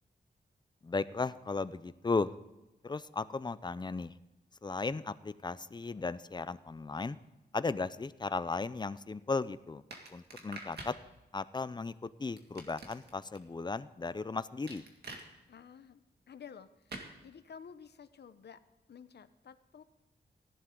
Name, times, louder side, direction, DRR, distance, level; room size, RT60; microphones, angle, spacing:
voice 1, 0.8-2.3 2.8-4.1 4.6-7.2 7.5-9.8 10.1-10.9 11.3-11.9 12.2-14.8, left 3 dB, 25° left, 15 dB, 0.5 m, -35 dB
sound 1, 9.9-11.0 12.4-13.4 14.7-15.2 16.9-17.1, right 2 dB, 75° right, 2.1 m, -46 dB
voice 2, 15.5-16.0 16.3-18.6 18.9-19.8, left 7 dB, 75° left, 12 dB, 0.8 m, -52 dB
16.0 x 11.0 x 3.8 m, 1.0 s
wide cardioid pair, 105°, 17 cm